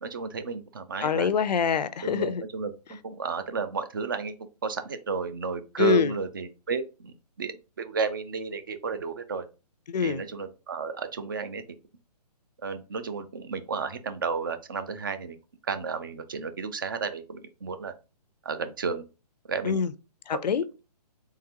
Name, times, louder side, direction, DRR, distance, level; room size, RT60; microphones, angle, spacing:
voice 1, 0.0-1.3 2.0-4.4 4.6-9.5 10.0-11.6 12.6-15.4 15.7-17.9 18.4-19.0 19.5-19.8, right 5 dB, 30° right, 0.4 m, -32 dB
voice 2, 1.0-2.4 5.8-6.1 9.9-10.2 19.6-19.9 20.3-20.6, left 6 dB, 80° left, 0.5 m, -25 dB
3.7 x 3.5 x 2.8 m
hypercardioid pair, 165°, 21 cm